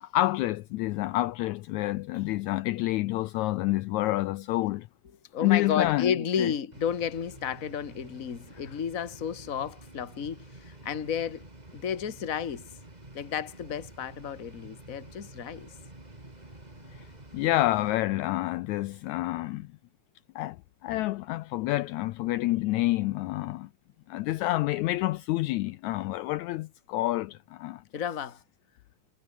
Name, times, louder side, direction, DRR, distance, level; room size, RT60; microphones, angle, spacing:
voice 1, 0.0-4.9 5.4-6.5 16.9-17.0 17.3-19.7 20.4-20.6 20.8-23.7 24.1-27.8, left 17 dB, 80° left, 1.8 m, -28 dB
voice 2, 5.3-12.6 13.1-15.7 27.9-28.4, left 8 dB, 35° left, 1.6 m, -32 dB
sound 1, 6.7-17.9, right 2 dB, 15° right, 3.1 m, -49 dB
omnidirectional pair, 3.7 m